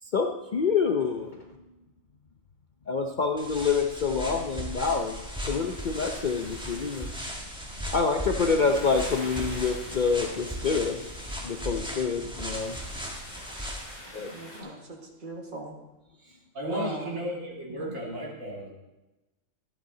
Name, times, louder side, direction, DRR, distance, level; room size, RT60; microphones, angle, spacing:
voice 1, 0.0-1.6 2.9-7.1 7.9-13.2 14.1-14.3 14.6-14.7 16.2-16.4, left 5 dB, 50° left, 4 dB, 0.6 m, -27 dB
sound 1, 3.4-14.0, equal, 5° right, 1.4 m, -37 dB
sound 2, 4.9-14.6, left 1 dB, 30° left, 3.8 m, -47 dB
voice 2, 14.2-15.7 16.7-17.2 17.7-18.0, right 1 dB, 35° right, 1 dB, 1.7 m, -39 dB
voice 3, 16.5-18.7, equal, 70° right, -2 dB, 2.6 m, -34 dB
12.5 x 10.5 x 3.8 m, 1.0 s
omnidirectional pair, 1.4 m